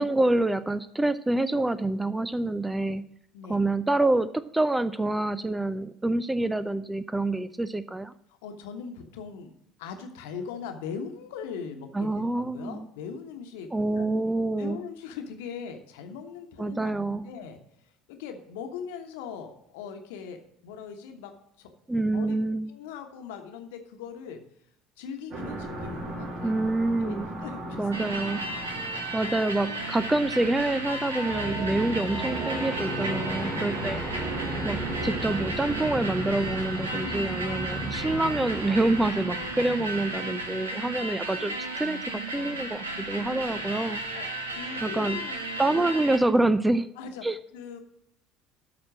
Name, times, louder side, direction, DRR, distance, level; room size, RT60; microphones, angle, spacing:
voice 1, 0.0-3.1 3.5-8.1 11.9-12.9 13.7-14.8 16.6-17.3 21.9-22.7 26.4-27.3 27.8-28.4 29.1-34.0 34.6-44.0 44.8-45.2 45.6-46.9 47.2-47.4, right 2 dB, 10° right, 15 dB, 0.5 m, -27 dB
voice 2, 8.3-13.7 14.0-14.1 14.6-21.3 21.6-21.7 22.1-22.4 22.7-24.4 25.0-26.6 27.0-27.9 33.5-33.6 36.9-37.7 39.8-39.9 43.3-43.7 44.1-45.4 45.6-45.9 47.0-47.2 47.5-47.8, left 6 dB, 65° left, 5 dB, 1.2 m, -40 dB
sound 1, 25.3-40.0, right 1 dB, 45° right, 2.8 m, -35 dB
sound 2, 27.9-46.2, right 2 dB, 80° right, 1.1 m, -34 dB
12.5 x 4.3 x 6.1 m, 0.77 s
figure-of-eight pair, 60°, 0 cm